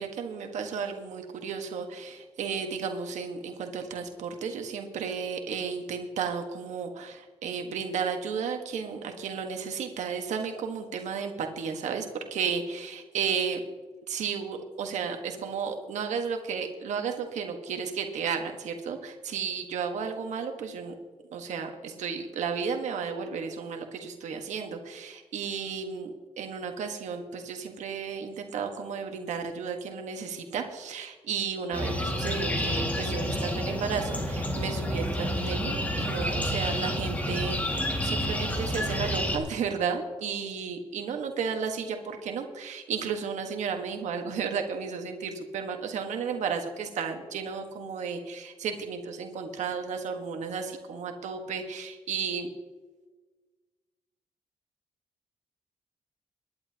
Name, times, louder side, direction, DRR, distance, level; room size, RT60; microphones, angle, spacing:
voice 1, 0.0-13.6 14.1-20.9 21.3-52.5, right 6 dB, 85° right, 4 dB, 1.4 m, -33 dB
sound 1, 31.7-39.4, equal, 15° left, 2.0 m, -29 dB
23.0 x 11.0 x 2.9 m, 1.4 s
wide cardioid pair, 135°, 12 cm